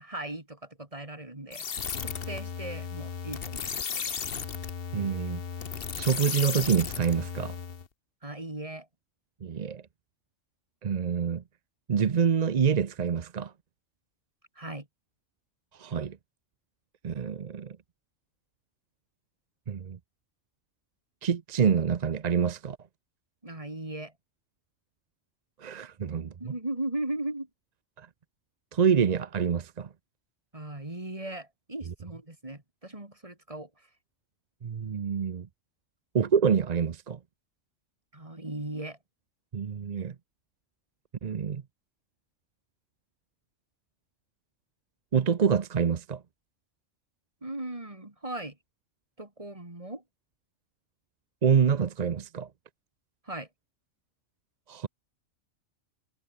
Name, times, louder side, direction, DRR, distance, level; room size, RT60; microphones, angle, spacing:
voice 1, 0.0-1.6 2.0-4.1 8.2-8.9 14.5-14.9 23.4-24.1 26.4-27.5 30.5-33.9 38.1-39.0 47.4-48.6 49.2-50.0 53.2-53.5, right 1 dB, 25° right, 3.2 m, -38 dB
sound 1, 1.5-7.9, left 6 dB, 50° left, 1.3 m, -35 dB
voice 2, 4.9-5.4 6.0-7.6 9.4-9.8 10.8-11.4 11.9-13.5 15.7-16.2 17.0-17.8 19.7-20.0 21.2-22.8 25.6-26.5 28.0-28.1 28.7-29.9 34.6-35.5 36.1-37.2 39.5-40.2 41.2-41.6 45.1-46.2 51.4-52.5 54.7-54.9, right 7 dB, 40° right, 0.7 m, -26 dB
omnidirectional pair, 1.3 m